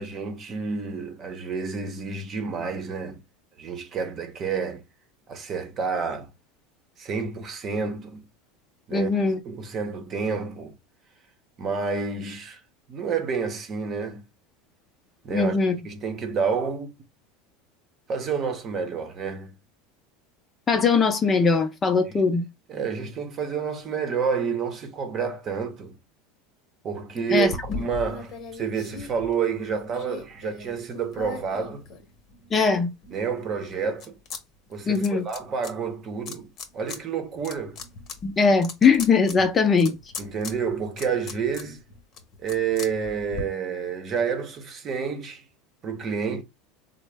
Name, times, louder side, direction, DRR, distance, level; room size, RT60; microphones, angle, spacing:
voice 1, 0.0-3.2 3.6-4.8 5.3-6.3 7.0-8.2 8.9-9.1 9.4-10.7 11.6-12.6 12.9-14.2 15.2-15.6 15.8-16.9 18.1-19.6 22.7-26.0 26.8-31.8 33.1-34.2 34.7-37.8 40.2-41.8 42.4-45.4 45.8-46.4, right 6 dB, 35° right, 0.8 m, -29 dB
voice 2, 8.9-9.4 15.3-15.8 20.7-22.4 27.3-27.5 32.5-32.9 34.9-35.2 38.2-40.0, left 4 dB, 25° left, 0.6 m, -20 dB
sound 1, 27.4-32.5 33.0-34.4 34.7-35.7 36.3-37.0 37.3-43.4, left 4 dB, 45° left, 0.9 m, -39 dB
3.7 x 2.1 x 3.4 m
supercardioid pair, 115°, 0 cm